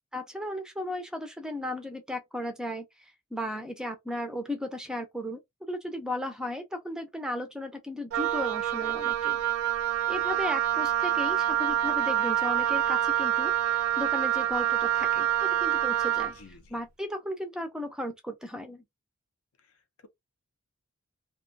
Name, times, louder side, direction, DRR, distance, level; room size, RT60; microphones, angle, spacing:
voice 1, 0.1-5.4 5.7-9.4 10.1-16.3 16.7-18.8, left 1 dB, 5° right, 0.3 m, -35 dB
Wind instrument woodwind instrument, 8.1-16.4, right 12 dB, 70° right, 0.4 m, -26 dB
voice 2, 16.3-16.8 19.6-20.1, left 4 dB, 80° left, 0.6 m, -54 dB
2.2 x 2.2 x 2.5 m
head